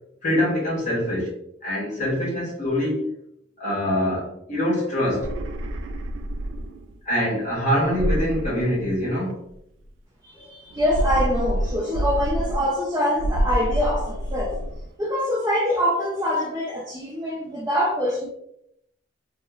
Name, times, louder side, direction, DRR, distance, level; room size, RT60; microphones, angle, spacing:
voice 1, 0.2-1.3 1.6-3.1 3.6-5.3 7.0-9.4, left 1 dB, 40° left, 0.8 m, -24 dB
sound 1, 5.0-6.9 7.8-9.3 10.7-12.9 13.2-14.9, right 1 dB, 80° right, 0.3 m, -27 dB
voice 2, 10.2-14.6 15.0-18.3, equal, 15° right, 0.5 m, -24 dB
2.9 x 2.1 x 2.3 m
head